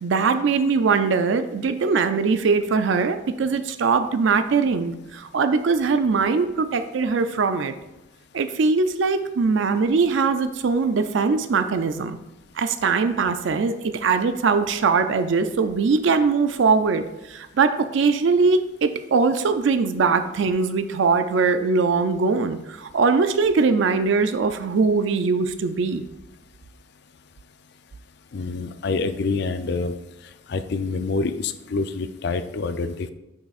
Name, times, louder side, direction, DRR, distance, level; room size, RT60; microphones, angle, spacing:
voice 1, 0.0-7.7 8.3-12.2 12.6-26.0, right 4 dB, 65° right, 9 dB, 0.4 m, -21 dB
voice 2, 28.3-29.9 30.5-33.1, left 3 dB, 55° left, 11 dB, 0.4 m, -26 dB
8.5 x 6.1 x 2.4 m, 0.98 s
head